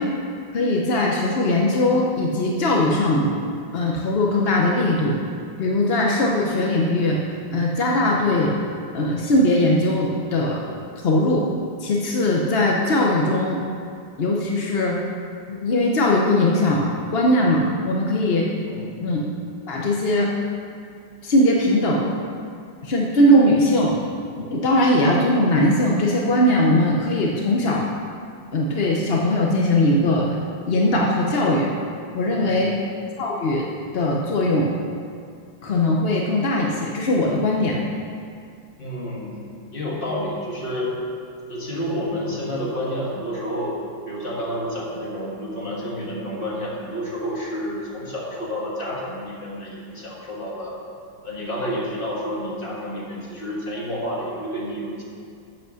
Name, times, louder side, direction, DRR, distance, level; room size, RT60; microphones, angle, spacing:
voice 1, 0.5-3.3 3.7-5.2 5.6-7.2 7.5-8.5 8.9-10.6 11.0-11.4 11.8-13.6 14.2-15.0 15.5-18.4 19.0-19.2 19.7-20.3 21.2-22.1 22.8-24.0 24.4-27.9 28.5-31.7 32.1-32.7 33.2-33.7 33.9-34.7 35.6-37.8, left 1 dB, 55° left, -2 dB, 0.7 m, -20 dB
voice 2, 32.3-32.8 38.8-39.4 39.7-41.0 41.5-50.8 51.2-55.0, equal, 30° left, -5 dB, 1.8 m, -29 dB
8.1 x 7.0 x 6.3 m, 2.3 s
omnidirectional pair, 2.1 m